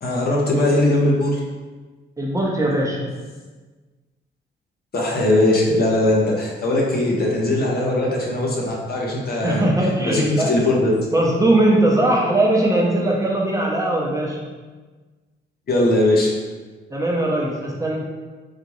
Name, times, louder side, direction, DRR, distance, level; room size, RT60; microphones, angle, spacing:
voice 1, 0.0-1.4 4.9-9.7 10.1-10.9 15.7-16.3, left 1 dB, 50° left, -3 dB, 1.0 m, -19 dB
voice 2, 2.2-3.1 9.4-10.5 11.1-14.4 16.9-18.0, right 1 dB, 15° right, -3 dB, 0.7 m, -20 dB
3.9 x 3.3 x 3.1 m, 1.3 s
cardioid pair, 90°, 20 cm